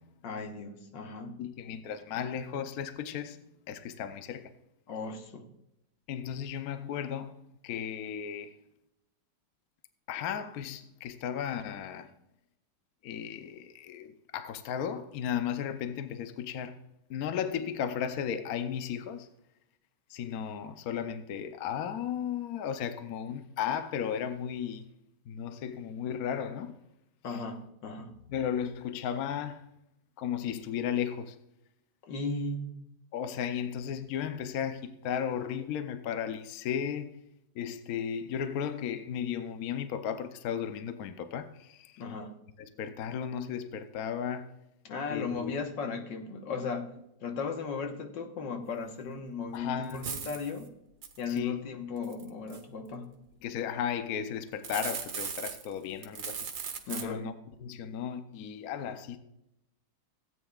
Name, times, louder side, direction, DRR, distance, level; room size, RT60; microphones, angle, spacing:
voice 1, 0.2-1.4 4.9-5.5 27.2-28.1 32.0-32.8 42.0-42.3 44.9-46.9 47.2-50.7 51.2-53.1 56.9-57.3, left 4 dB, 80° left, 1.8 m, -36 dB
voice 2, 1.4-4.5 6.1-7.4 7.6-8.6 10.1-12.1 13.0-16.8 17.1-19.3 20.1-24.9 25.3-26.7 27.3-27.4 28.3-29.6 30.2-31.4 33.1-37.2 37.5-42.0 42.6-44.5 45.1-45.5 49.5-50.1 51.3-51.6 53.4-56.4 57.0-57.3 57.6-59.2, left 8 dB, 65° left, 1.0 m, -35 dB
sound 1, 49.5-49.6 49.9-50.5 51.0-51.4 52.0-52.6 54.5-55.7 56.0-57.0, right 6 dB, 80° right, 1.8 m, -37 dB
16.5 x 9.1 x 2.4 m
omnidirectional pair, 2.0 m